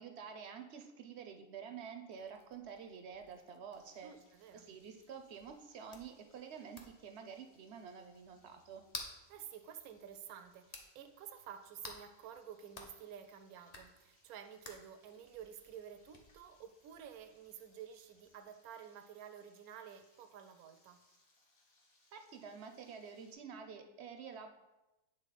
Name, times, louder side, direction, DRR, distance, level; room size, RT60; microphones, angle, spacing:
voice 1, 0.0-4.1 4.5-8.8 22.1-24.5, right 6 dB, 60° right, 6 dB, 0.7 m, -49 dB
sound 1, 2.1-18.5, left 2 dB, 35° left, 0.7 m, -56 dB
Frying (food), 3.7-23.3, left 2 dB, 70° left, 1.7 m, -73 dB
voice 2, 4.0-4.7 9.3-21.0, right 8 dB, 85° right, 8 dB, 1.1 m, -51 dB
9.0 x 3.8 x 4.0 m, 1.0 s
omnidirectional pair, 1.5 m